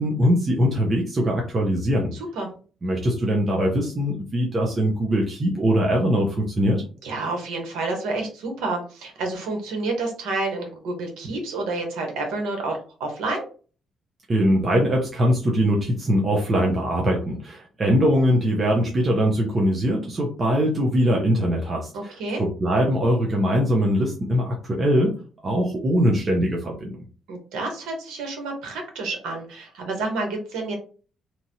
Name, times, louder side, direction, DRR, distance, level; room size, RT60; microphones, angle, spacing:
voice 1, 0.0-2.1 2.8-6.8 14.3-25.1 25.4-27.0, equal, 35° right, -1 dB, 0.8 m, -22 dB
voice 2, 7.0-13.5 21.9-22.4 27.3-30.8, right 2 dB, 90° right, 2 dB, 1.1 m, -29 dB
2.9 x 2.5 x 2.8 m, 0.38 s
cardioid pair, 90°, 0 cm